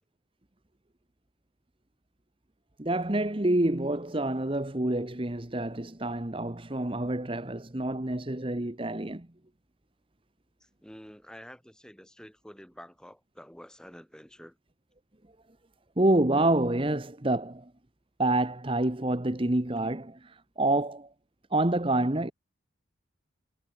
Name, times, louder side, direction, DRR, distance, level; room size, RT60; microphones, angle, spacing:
voice 1, 2.8-9.3 16.0-17.7 18.2-21.1 21.5-22.3, right 1 dB, 25° right, 1.2 m, -27 dB
voice 2, 10.6-14.6, equal, 5° left, 2.6 m, -49 dB
head